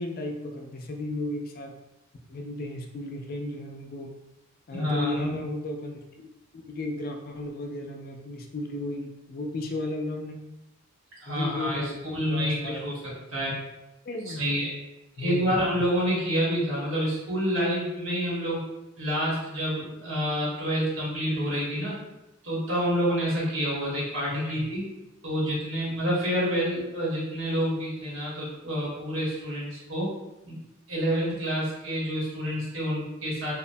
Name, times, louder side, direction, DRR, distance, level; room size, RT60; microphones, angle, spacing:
voice 1, 0.0-1.7 2.3-4.1 4.7-6.0 6.5-10.4 11.3-12.8 14.1-14.4 15.2-15.6 24.3-24.7, left 2 dB, 50° left, 3 dB, 0.3 m, -34 dB
voice 2, 4.7-5.3 11.2-13.5 14.2-14.7 15.2-18.6 19.0-21.9 22.4-24.8 25.2-30.1 30.4-30.6 30.9-33.5, equal, 85° right, -6 dB, 1.2 m, -28 dB
2.9 x 2.1 x 2.6 m, 0.96 s
head